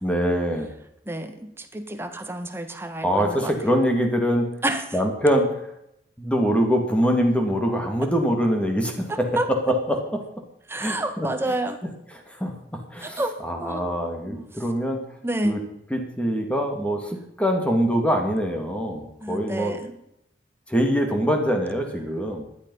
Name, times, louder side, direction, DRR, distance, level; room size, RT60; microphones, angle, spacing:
voice 1, 0.0-0.7 3.0-4.5 4.9-5.7 6.2-10.0 10.8-11.3 12.3-12.5 12.9-15.0 15.4-15.6 15.9-19.7 20.7-22.5, equal, 5° left, 3 dB, 2.4 m, -24 dB
voice 2, 1.1-3.5 4.6-4.9 9.1-9.5 10.7-11.8 13.0-13.8 14.2-14.5 15.2-15.7 19.2-20.0, right 1 dB, 15° right, 7 dB, 1.5 m, -29 dB
16.0 x 11.0 x 5.6 m, 0.80 s
head